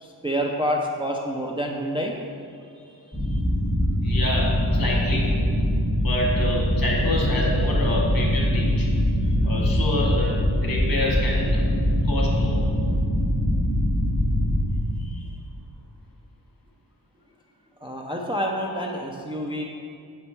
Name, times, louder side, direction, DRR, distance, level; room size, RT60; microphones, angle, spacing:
voice 1, 0.0-2.1 2.9-3.0 3.3-3.4 9.2-9.8 15.3-15.4 17.8-19.6, equal, 15° right, 0 dB, 0.4 m, -28 dB
sound 1, 3.1-14.7, equal, 5° left, 1.2 m, -22 dB
voice 2, 4.0-5.3 6.0-8.9 9.4-11.6 12.0-12.7 15.0-15.1, left 1 dB, 55° left, -2 dB, 1.3 m, -28 dB
7.3 x 4.2 x 4.4 m, 2.4 s
wide cardioid pair, 145°, 42 cm